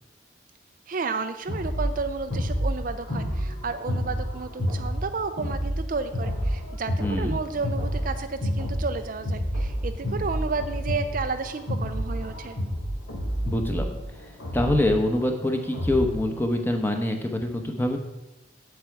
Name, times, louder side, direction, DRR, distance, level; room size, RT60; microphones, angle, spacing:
voice 1, 0.9-12.6, right 4 dB, 45° right, 9 dB, 0.4 m, -32 dB
sound 1, 1.5-16.2, equal, 90° left, 3.2 m, -29 dB
voice 2, 7.0-7.3 13.5-13.9 14.1-18.0, left 1 dB, 10° left, 4 dB, 0.9 m, -25 dB
8.4 x 8.0 x 4.6 m, 0.95 s
head